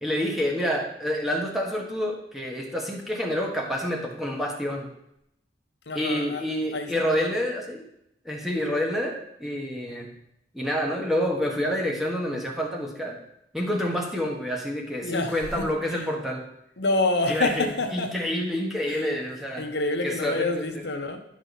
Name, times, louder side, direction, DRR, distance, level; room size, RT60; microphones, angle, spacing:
voice 1, 0.0-4.9 5.9-7.8 8.2-10.1 10.5-13.2 13.5-16.5 17.3-19.7 20.0-20.7, equal, ahead, 1.4 m, -28 dB
voice 2, 5.9-6.4 6.7-7.5 15.0-16.1 16.8-18.2 18.9-19.0 19.6-21.2, left 2 dB, 75° left, 0.9 m, -28 dB
11.0 x 5.1 x 4.1 m
head